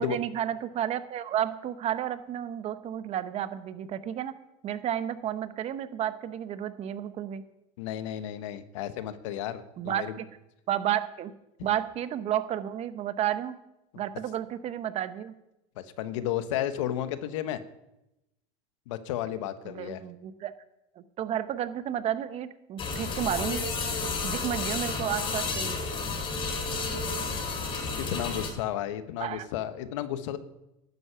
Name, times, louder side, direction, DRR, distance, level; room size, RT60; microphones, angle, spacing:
voice 1, 0.0-4.3 4.6-7.4 9.8-10.3 10.7-11.3 11.6-13.5 14.0-15.3 19.6-20.5 21.0-23.6 24.2-25.8 29.2-29.5, right 10 dB, 45° right, 12 dB, 0.9 m, -31 dB
voice 2, 7.8-10.1 15.8-17.6 18.9-20.0 28.0-30.4, left 11 dB, 90° left, 12 dB, 1.0 m, -33 dB
sound 1, 22.8-28.5, left 4 dB, 35° left, 2.7 m, -31 dB
11.5 x 9.5 x 5.7 m, 0.90 s
supercardioid pair, 120°, 16 cm